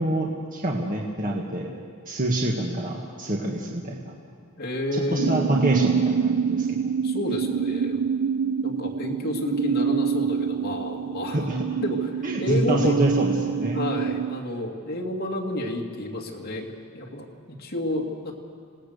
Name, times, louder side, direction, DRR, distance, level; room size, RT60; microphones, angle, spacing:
voice 1, 0.0-1.7 2.1-4.1 4.9-6.9 11.3-11.6 12.2-13.8, right 1 dB, 40° right, -1 dB, 1.7 m, -26 dB
voice 2, 4.6-5.6 7.0-8.0 8.6-11.5 11.8-13.0 13.7-18.3, left 1 dB, 45° left, 0 dB, 2.5 m, -30 dB
sound 1, 5.2-14.4, right 6 dB, 75° right, 0.6 m, -26 dB
27.0 x 18.5 x 6.6 m, 2.2 s
head